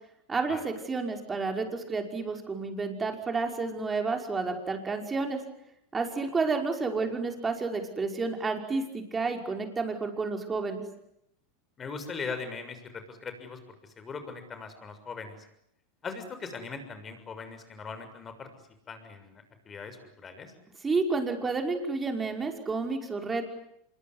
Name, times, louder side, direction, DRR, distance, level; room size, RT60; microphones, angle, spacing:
voice 1, 0.3-5.4 5.9-10.8 20.8-23.5, right 4 dB, 20° right, 4 dB, 5.5 m, -30 dB
voice 2, 11.8-13.6 14.0-15.3 16.0-18.5 18.9-20.5, left 5 dB, 25° left, 9 dB, 6.6 m, -40 dB
26.0 x 23.0 x 9.7 m, 0.78 s
hypercardioid pair, 110°, 0 cm